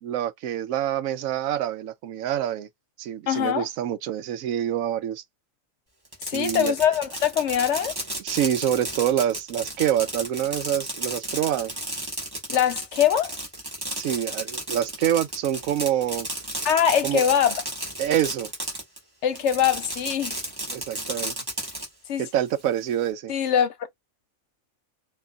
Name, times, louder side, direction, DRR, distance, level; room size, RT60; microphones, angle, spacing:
voice 1, 0.0-2.7 3.0-5.2 6.3-6.7 8.2-11.7 14.0-16.3 17.0-17.2 18.0-18.5 20.7-21.3 22.2-23.3, right 11 dB, 85° right, 1.0 m, -26 dB
voice 2, 3.3-3.6 6.2-7.9 12.5-13.3 16.6-17.6 19.2-20.4 22.1-22.2 23.3-23.7, left 9 dB, 65° left, 0.9 m, -22 dB
Fireworks, 6.0-19.0 19.3-21.9, right 1 dB, 15° right, 1.6 m, -33 dB
3.5 x 2.8 x 3.9 m
omnidirectional pair, 1.4 m